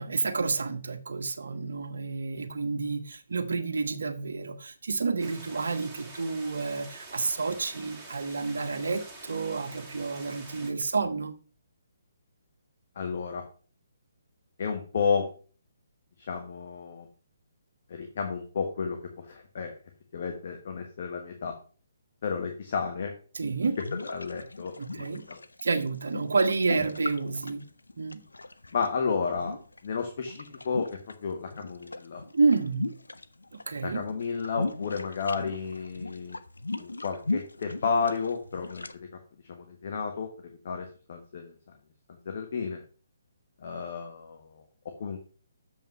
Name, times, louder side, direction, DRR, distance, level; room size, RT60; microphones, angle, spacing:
voice 1, 0.0-11.3 23.3-23.8 24.8-25.2 25.6-27.6 28.0-28.2 32.3-32.9 33.5-34.0, right 4 dB, 70° right, 1.2 m, -29 dB
sound 1, 5.2-10.7, right 2 dB, 10° right, 2.3 m, -47 dB
voice 2, 12.9-13.4 14.6-15.3 16.3-17.1 17.9-19.7 20.1-21.6 22.2-23.1 23.8-25.4 28.7-29.6 29.8-32.2 33.8-36.4 36.8-39.1 39.5-41.5 42.2-42.8 43.6-45.2, left 5 dB, 50° left, 1.3 m, -32 dB
sound 2, 23.4-28.9 29.3-31.1 31.4-33.7 34.0-38.9, left 2 dB, 85° left, 0.6 m, -38 dB
7.2 x 5.7 x 5.5 m
figure-of-eight pair, 140°, 0 cm